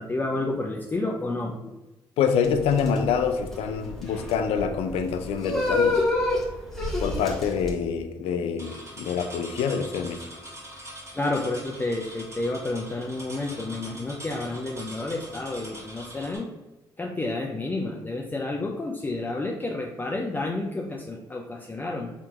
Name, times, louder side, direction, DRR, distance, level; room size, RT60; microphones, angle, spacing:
voice 1, 0.0-1.6 11.1-16.5 17.0-22.1, left 2 dB, 20° left, 0 dB, 0.4 m, -30 dB
voice 2, 2.2-6.0 7.0-10.2, left 6 dB, 80° left, 7 dB, 0.4 m, -26 dB
sound 1, 2.4-7.7, left 2 dB, 5° left, 1.1 m, -27 dB
sound 2, 8.6-16.4, right 1 dB, 30° right, 1.4 m, -43 dB
3.6 x 2.8 x 2.4 m, 1.1 s
supercardioid pair, 60°, 10 cm